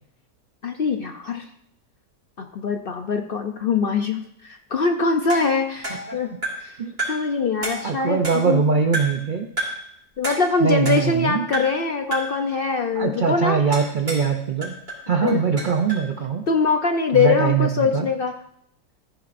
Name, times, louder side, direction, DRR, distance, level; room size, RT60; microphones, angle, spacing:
voice 1, 0.6-1.5 2.4-6.3 6.6-6.8 7.1-8.6 10.2-13.6 15.2-15.4 16.5-18.3, left 4 dB, 65° left, 5 dB, 0.5 m, -23 dB
sound 1, 5.3-6.7 7.0-7.3 7.6-8.6 8.9-9.3 9.6-9.9 10.2-11.2 11.5-11.9 12.1-12.4 13.7-14.3 14.6-16.1, right 1 dB, 35° right, 3.7 m, -31 dB
voice 2, 7.8-9.5 10.6-11.4 13.0-14.7 15.1-16.4 17.1-18.1, right 6 dB, 80° right, 4 dB, 0.4 m, -22 dB
14.5 x 9.8 x 2.6 m, 0.72 s
omnidirectional pair, 1.7 m